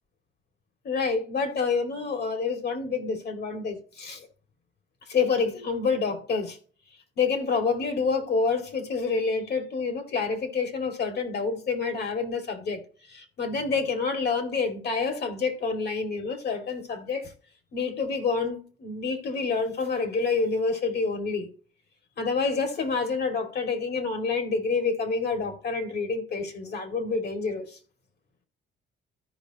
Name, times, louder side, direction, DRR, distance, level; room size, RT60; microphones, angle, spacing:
voice 1, 0.8-4.3 5.1-6.6 7.2-12.8 13.1-17.3 17.7-21.5 22.2-27.8, left 4 dB, 55° left, 2.5 m, -28 dB
14.0 x 5.3 x 3.0 m
cardioid pair, 90°, 20 cm